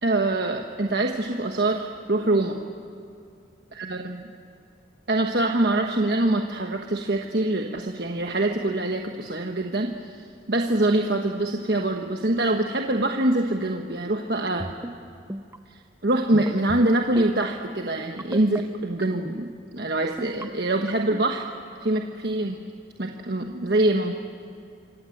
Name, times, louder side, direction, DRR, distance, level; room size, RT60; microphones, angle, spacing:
voice 1, 0.0-2.6 3.7-4.2 5.1-9.9 10.5-14.7 16.0-19.5 19.7-21.4 21.8-22.6 23.0-24.1, right 2 dB, 60° right, 3 dB, 1.2 m, -24 dB
sound 1, 14.5-14.9 15.3-15.6 16.3-16.8 17.2-17.4 18.2-18.6 19.0-19.4 20.0-20.4 20.9-21.2, right 1 dB, 15° right, 0.6 m, -34 dB
26.5 x 26.0 x 7.9 m, 2.5 s
head